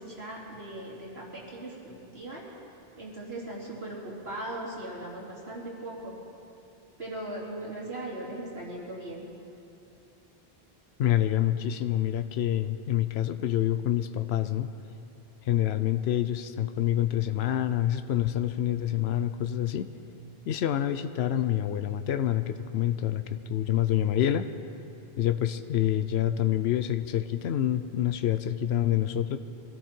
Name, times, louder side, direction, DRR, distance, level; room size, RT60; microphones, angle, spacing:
voice 1, 0.0-2.5 3.0-6.1 7.0-9.2, right 1 dB, 75° right, -4 dB, 3.3 m, -39 dB
voice 2, 11.0-14.7 15.4-19.9 20.5-24.5 25.2-29.4, left 11 dB, 90° left, 11 dB, 0.9 m, -27 dB
24.0 x 13.5 x 4.5 m, 2.7 s
omnidirectional pair, 1.0 m